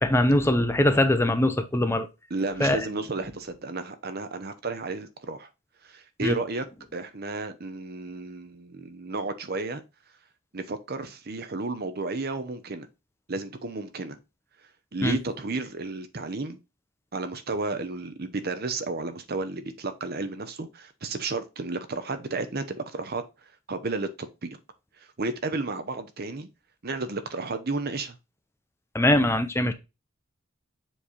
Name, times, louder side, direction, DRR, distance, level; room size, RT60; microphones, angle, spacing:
voice 1, 0.0-2.1 2.6-2.9 6.2-6.4 15.0-15.2 28.9-29.7, left 1 dB, 10° left, 0.6 m, -22 dB
voice 2, 2.3-5.5 5.8-6.7 6.9-9.8 10.5-12.9 13.3-14.2 14.9-16.6 17.1-23.2 23.7-24.6 25.0-26.5 26.8-28.2, right 3 dB, 50° right, 0.8 m, -32 dB
7.3 x 3.3 x 4.2 m
head